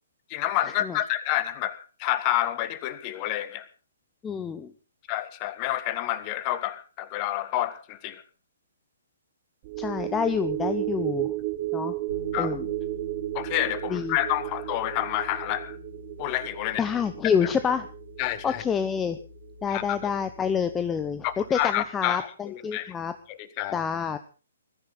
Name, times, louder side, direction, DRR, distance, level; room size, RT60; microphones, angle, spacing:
voice 1, 0.3-3.7 5.1-8.2 12.3-12.6 13.3-15.8 16.2-16.8 18.2-18.6 19.7-20.1 21.2-22.9 23.3-23.8, left 13 dB, 30° left, 14 dB, 1.8 m, -29 dB
voice 2, 4.2-4.7 9.8-11.3 11.7-12.0 12.4-12.7 13.9-14.2 16.8-17.9 18.4-19.2 19.6-23.1 23.7-24.2, left 7 dB, 15° left, 11 dB, 0.9 m, -27 dB
sound 1, 9.6-20.2 20.6-20.7, right 17 dB, 35° right, 0.8 m, -34 dB
Bass guitar, 12.1-22.0, left 3 dB, 85° left, 7.3 m, -46 dB
21.5 x 14.0 x 4.1 m, 0.35 s
figure-of-eight pair, 125°, 0 cm